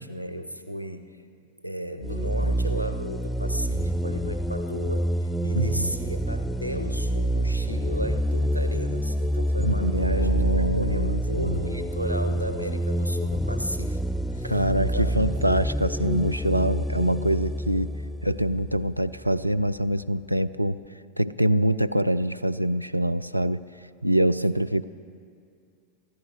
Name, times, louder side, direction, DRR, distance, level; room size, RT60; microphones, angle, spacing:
voice 1, 0.0-14.6 14.9-15.1, equal, 90° left, 10 dB, 0.7 m, -35 dB
sound 1, 2.0-19.4, equal, 5° left, 0.3 m, -27 dB
voice 2, 5.6-5.9 9.6-11.6 14.4-17.9 18.2-20.8 21.2-23.6 24.0-24.8, right 1 dB, 90° right, 11 dB, 0.3 m, -25 dB
23.0 x 14.0 x 3.5 m, 2.3 s
figure-of-eight pair, 90°, 0 cm